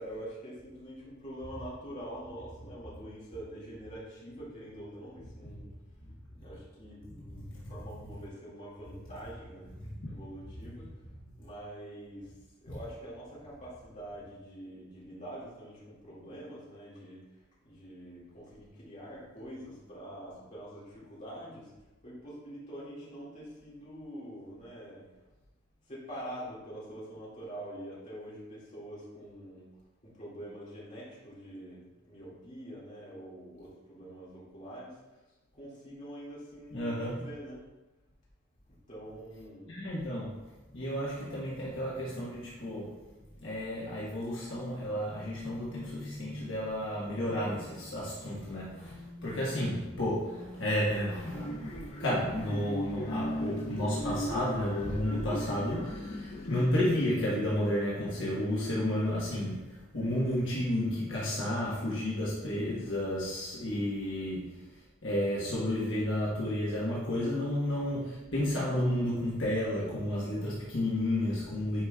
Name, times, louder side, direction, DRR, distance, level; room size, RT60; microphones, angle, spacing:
voice 1, 0.0-5.7 6.3-9.7 10.1-11.0 11.4-12.3 12.6-17.2 17.6-21.7 22.0-25.1 25.9-29.7 30.0-35.3 35.5-37.6 38.9-39.8, right 1 dB, 35° left, -7 dB, 2.1 m, -45 dB
voice 2, 9.8-10.1 12.7-12.8 36.7-37.3 39.7-43.1 43.4-71.9, left 1 dB, 65° left, -7 dB, 1.3 m, -32 dB
sound 1, 51.3-56.7, equal, 85° left, 1.4 m, -37 dB
9.1 x 4.8 x 2.4 m, 1.1 s
head